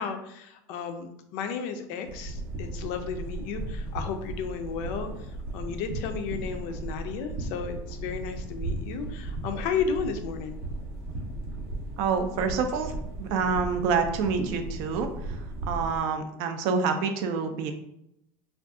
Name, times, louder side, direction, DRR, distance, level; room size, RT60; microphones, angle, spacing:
voice 1, 0.0-10.6, left 6 dB, 60° left, 7 dB, 0.4 m, -33 dB
sound 1, 2.1-16.0, right 2 dB, 85° right, 1.2 m, -36 dB
voice 2, 12.0-12.9 13.2-17.7, right 5 dB, 55° right, 6 dB, 0.4 m, -27 dB
2.5 x 2.3 x 3.5 m, 0.78 s
cardioid pair, 175°, 8 cm